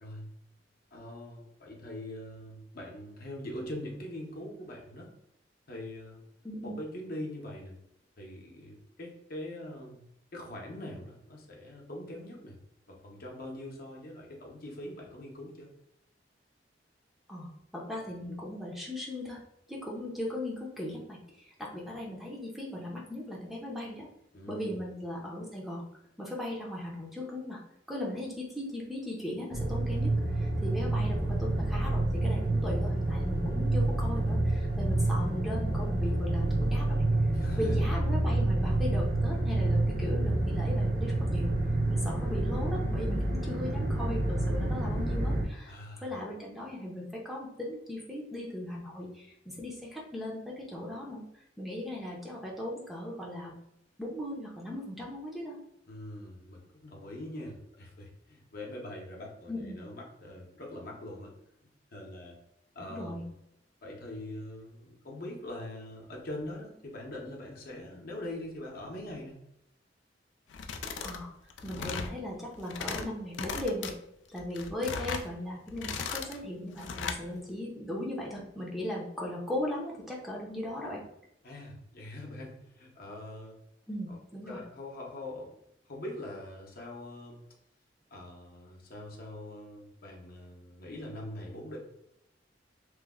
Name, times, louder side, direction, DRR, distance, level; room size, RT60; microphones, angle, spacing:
voice 1, 0.0-0.3 0.9-5.1 5.7-6.2 6.6-7.8 8.2-10.0 10.3-12.6 12.9-15.7 24.3-24.9 37.3-38.0 45.6-46.1 55.9-61.3 61.9-62.4 62.7-63.3 63.8-69.4 81.4-83.6 84.5-85.6 85.9-87.4 88.1-91.8, left 1 dB, 55° left, -1 dB, 0.8 m, -42 dB
voice 2, 17.3-19.4 19.7-24.1 24.5-25.9 26.2-27.6 27.9-41.6 41.9-45.8 46.0-51.2 51.6-53.5 54.0-55.6 59.5-59.8 62.9-63.2 71.0-71.3 71.6-74.0 74.3-81.0 83.9-84.6, left 1 dB, ahead, -3 dB, 0.6 m, -38 dB
sound 1, 29.5-45.4, right 2 dB, 50° right, 0.7 m, -28 dB
sound 2, 70.5-71.2 71.5-72.1 72.6-73.0 73.3-73.9 74.4-75.3 75.7-76.4 76.8-77.2, left 5 dB, 85° left, 0.4 m, -37 dB
3.1 x 2.0 x 3.6 m, 0.81 s
head